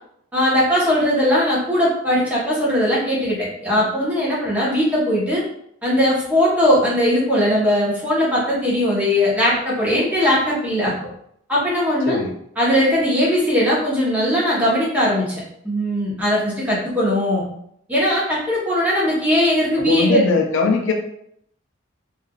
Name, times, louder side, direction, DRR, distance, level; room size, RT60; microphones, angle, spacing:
voice 1, 0.3-5.4 5.8-10.9 11.5-12.2 12.6-17.5 17.9-20.2, equal, 5° right, -6 dB, 0.9 m, -19 dB
voice 2, 19.8-20.9, left 4 dB, 60° left, 1 dB, 0.4 m, -20 dB
3.2 x 2.4 x 2.3 m, 0.70 s
head